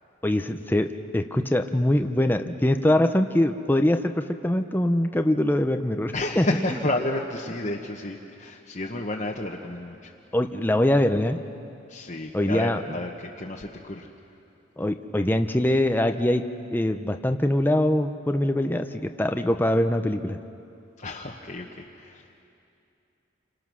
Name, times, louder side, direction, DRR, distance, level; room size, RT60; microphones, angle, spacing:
voice 1, 0.2-6.5 10.3-11.4 12.3-12.8 14.8-16.4 16.7-20.4, left 1 dB, 10° left, 6 dB, 0.7 m, -23 dB
voice 2, 6.1-10.1 11.9-14.1 21.0-22.3, left 1 dB, 40° left, -1 dB, 1.2 m, -31 dB
28.5 x 25.5 x 6.3 m, 2.6 s
head